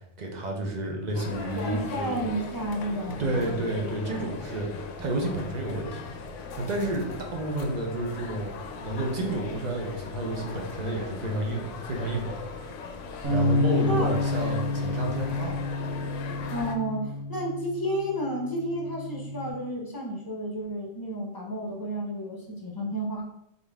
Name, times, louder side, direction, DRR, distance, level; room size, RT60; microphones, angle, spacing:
voice 1, 0.2-2.3 3.2-6.0 6.4-8.5 8.8-12.4 13.3-15.5, right 1 dB, 40° right, 0 dB, 0.7 m, -30 dB
sound 1, 1.1-16.8, left 4 dB, 65° left, 0.9 m, -39 dB
voice 2, 1.5-3.5 13.9-14.1 16.5-23.2, right 1 dB, 20° left, -2 dB, 0.8 m, -31 dB
sound 2, 13.2-19.5, left 2 dB, 80° right, 1.7 m, -29 dB
4.0 x 3.7 x 3.5 m, 0.81 s
omnidirectional pair, 1.5 m